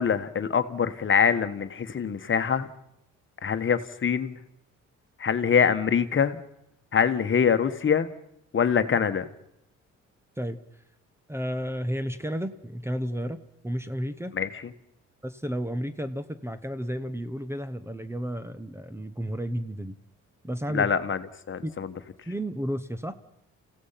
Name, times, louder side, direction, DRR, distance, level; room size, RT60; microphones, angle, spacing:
voice 1, 0.0-2.7 3.4-4.3 5.2-6.4 6.9-8.1 8.5-9.3 14.3-14.5 20.7-21.2 21.5-21.9, left 7 dB, 40° left, 10 dB, 1.4 m, -24 dB
voice 2, 11.3-14.4 15.2-20.0 20.4-20.9 21.6-21.7 22.3-23.1, equal, 10° right, 12 dB, 1.0 m, -32 dB
29.5 x 16.0 x 5.8 m, 0.77 s
cardioid pair, 90°, 30 cm